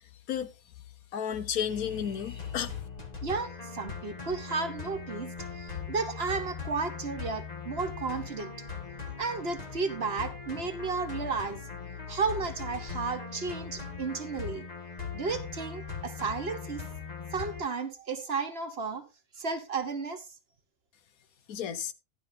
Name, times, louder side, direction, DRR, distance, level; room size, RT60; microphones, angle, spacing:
voice 1, 1.1-2.8 21.5-21.9, left 8 dB, 80° left, 1.3 m, -32 dB
sound 1, 1.7-17.6, left 6 dB, 30° left, 1.6 m, -40 dB
voice 2, 3.2-8.5 9.2-11.6 12.1-14.7 15.1-16.8 17.3-19.0 19.4-20.2, right 4 dB, 45° right, 1.3 m, -33 dB
11.5 x 11.5 x 2.7 m
omnidirectional pair, 1.5 m